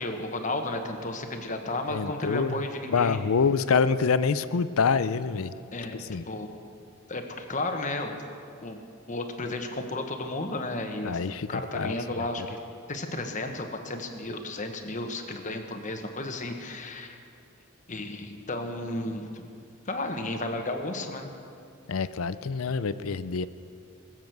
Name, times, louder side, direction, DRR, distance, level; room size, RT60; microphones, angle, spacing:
voice 1, 0.0-3.2 5.7-6.0 6.3-6.5 7.1-8.2 8.6-8.8 9.1-12.6 12.9-17.2 17.9-19.5 19.8-21.3, left 2 dB, 35° left, 5 dB, 1.2 m, -33 dB
voice 2, 1.9-2.6 2.9-5.5 6.0-6.2 11.0-12.0 12.4-12.5 21.9-23.5, left 5 dB, 85° left, 15 dB, 0.5 m, -26 dB
20.5 x 7.6 x 7.8 m, 2.5 s
head